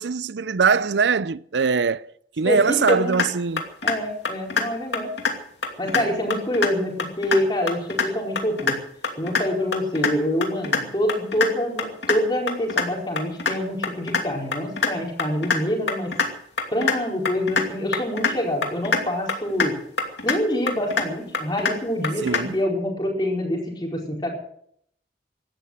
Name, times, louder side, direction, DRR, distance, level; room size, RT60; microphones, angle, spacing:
voice 1, 0.0-2.1 2.4-3.6 5.9-6.1 22.2-22.6, right 5 dB, 75° right, 0.6 m, -22 dB
voice 2, 2.4-3.2 3.8-5.1 5.8-8.8 9.2-16.1 16.7-19.8 20.2-24.3, left 1 dB, 25° left, 4.7 m, -26 dB
sound 1, 2.9-3.3 3.6-4.0 4.3-4.6 4.9-5.3 5.6-6.0 6.3-6.7 7.0-7.4 7.7-8.1 8.4-8.7 9.0-9.4 9.7-10.1 10.4-10.8 11.1-11.5 11.8-12.2 12.5-12.8 13.2-13.5 13.8-14.2 14.5-14.9 15.2-15.6 15.9-16.3 16.6-16.9 17.3-17.7 17.9-18.3 18.6-19.0 19.3-19.7 20.0-20.4 20.7-21.1 21.3-21.7 22.0-22.4, left 4 dB, 75° left, 2.7 m, -23 dB
16.5 x 12.5 x 6.5 m
head